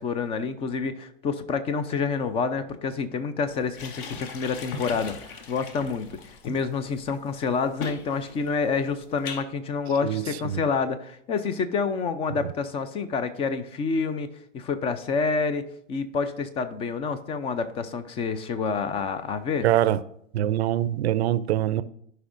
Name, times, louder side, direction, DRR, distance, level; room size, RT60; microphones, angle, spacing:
voice 1, 0.0-6.1 6.4-14.3 14.5-19.7, left 5 dB, 15° left, 0.4 m, -28 dB
sound 1, 3.5-9.4, left 4 dB, 45° left, 1.1 m, -39 dB
voice 2, 10.0-10.6 19.6-20.0 20.3-21.8, right 12 dB, 55° right, 0.6 m, -24 dB
15.0 x 5.3 x 2.6 m
hypercardioid pair, 105°, 38 cm